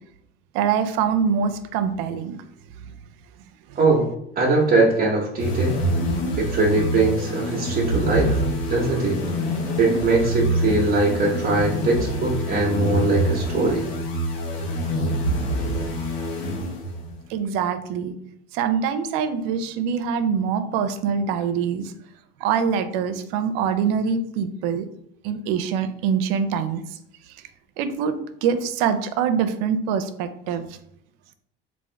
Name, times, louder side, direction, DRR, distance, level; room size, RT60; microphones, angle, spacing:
voice 1, 0.5-2.4 2.9-3.0 3.7-3.8 17.3-18.1 18.5-21.9 22.4-24.9 25.2-26.8 27.8-30.7, right 7 dB, 70° right, 9 dB, 0.5 m, -24 dB
voice 2, 3.8-4.1 4.4-5.8 6.4-8.4 8.7-9.2 9.8-13.9, right 3 dB, 30° right, -4 dB, 0.9 m, -21 dB
sound 1, 5.4-17.1, equal, 75° left, 1.2 m, -26 dB
3.5 x 2.6 x 3.3 m, 0.73 s
supercardioid pair, 90°, 29 cm